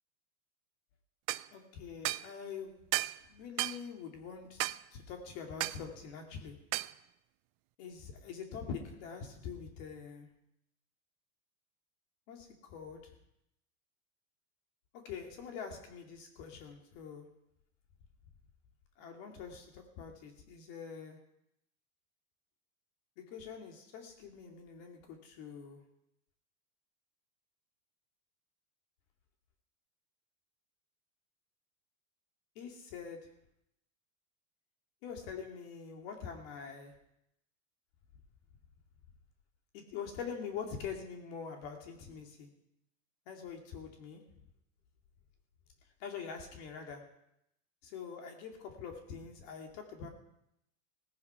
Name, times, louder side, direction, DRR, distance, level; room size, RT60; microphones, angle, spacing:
sound 1, 1.3-1.5 2.0-2.3 2.9-3.2 3.6-3.8 4.6-4.8 5.6-5.8 6.7-6.9, right 20 dB, 45° right, 0.5 m, -33 dB
voice 1, 1.5-2.8 3.3-6.6 7.8-10.3 12.3-13.1 14.9-17.3 19.0-21.2 23.2-25.8 32.6-33.2 35.0-36.9 39.7-42.5 43.3-44.2 46.0-47.0 47.8-50.1, left 6 dB, 60° left, 3 dB, 2.4 m, -44 dB
17.5 x 9.4 x 5.7 m, 0.81 s
supercardioid pair, 130°, 41 cm